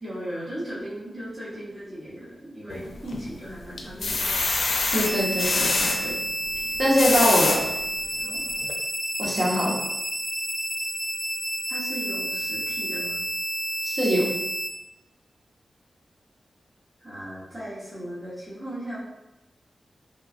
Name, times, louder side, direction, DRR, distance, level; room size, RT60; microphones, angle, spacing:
voice 1, 0.0-4.5 8.2-8.4 11.7-13.2 17.0-19.0, right 1 dB, 30° right, -10 dB, 1.0 m, -37 dB
sound 1, 2.7-3.3 3.8-6.0 6.7-7.6 8.2-8.3 8.6-8.7, left 3 dB, 75° left, 0.4 m, -25 dB
voice 2, 4.9-5.9 6.8-7.6 9.2-9.7 13.8-14.2, equal, 65° right, -5 dB, 1.0 m, -22 dB
sound 2, 5.0-14.7, right 1 dB, ahead, 0.4 m, -30 dB
3.0 x 2.3 x 2.4 m, 0.97 s
wide cardioid pair, 75°, 0 cm